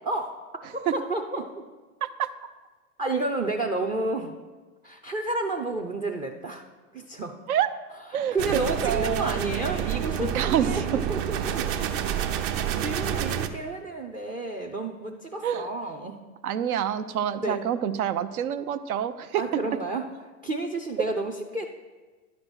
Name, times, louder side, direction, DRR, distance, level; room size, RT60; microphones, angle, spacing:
voice 1, 0.1-0.4 0.9-1.6 3.0-4.3 4.8-6.6 6.9-7.4 8.3-11.7 12.8-16.2 17.4-17.6 19.4-20.0 20.4-21.7, right 2 dB, 15° right, 4 dB, 0.4 m, -30 dB
voice 2, 8.1-9.4 10.3-10.8 15.4-15.7 16.4-19.4, right 9 dB, 80° right, 11 dB, 0.7 m, -27 dB
sound 1, 8.4-13.5, right 9 dB, 50° right, 0.8 m, -28 dB
11.0 x 5.2 x 6.1 m, 1.3 s
hypercardioid pair, 110°, 43 cm